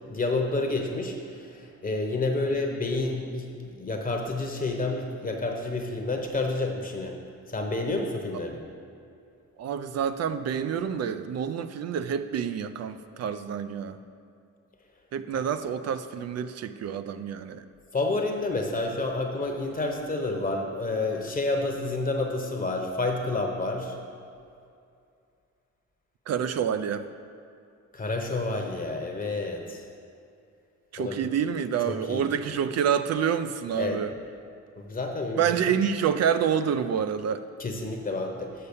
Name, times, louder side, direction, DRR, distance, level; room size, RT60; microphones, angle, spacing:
voice 1, 0.1-7.2 7.5-8.6 17.9-24.0 27.9-29.8 31.0-31.3 31.9-32.4 33.8-34.0 34.8-35.6 37.6-38.7, left 2 dB, 30° left, 2 dB, 0.9 m, -29 dB
voice 2, 9.6-14.0 15.1-17.6 26.3-27.0 30.9-34.1 35.4-37.4, right 8 dB, 55° right, 11 dB, 0.4 m, -28 dB
6.7 x 5.5 x 6.9 m, 2.5 s
cardioid pair, 120°, 30 cm